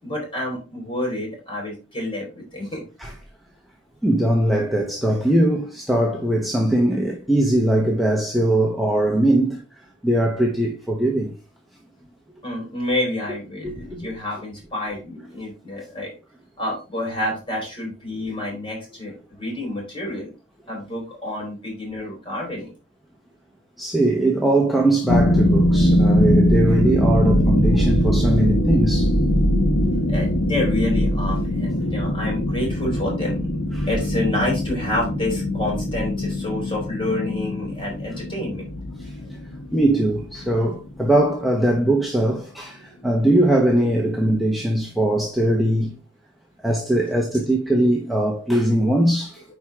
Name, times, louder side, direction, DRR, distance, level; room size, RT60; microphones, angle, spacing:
voice 1, 0.0-2.8 12.4-16.1 16.6-20.3 20.7-22.7 30.1-33.4 33.9-38.6, left 1 dB, 25° left, 4.2 m, -28 dB
voice 2, 4.0-9.6 10.0-11.3 13.6-14.0 23.8-29.1 29.9-30.0 33.7-33.9 39.0-39.1 39.7-46.0 46.6-49.4, right 1 dB, ahead, 0.9 m, -20 dB
sound 1, 25.1-41.0, equal, 65° left, 1.4 m, -21 dB
9.4 x 4.7 x 3.6 m
head